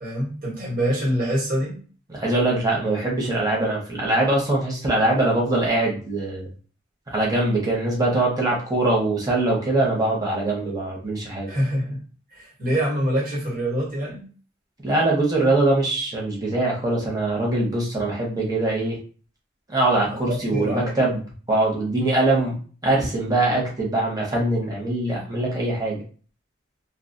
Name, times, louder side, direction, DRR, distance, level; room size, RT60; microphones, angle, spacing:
voice 1, 0.0-1.8 11.5-12.0 12.3-14.3 20.1-21.2, equal, 45° right, -4 dB, 1.1 m, -25 dB
voice 2, 2.1-6.5 7.1-11.5 14.8-19.0 19.7-21.2 21.5-22.6 22.8-26.0, right 2 dB, 20° right, -3 dB, 0.8 m, -22 dB
2.3 x 2.2 x 2.5 m, 0.39 s
head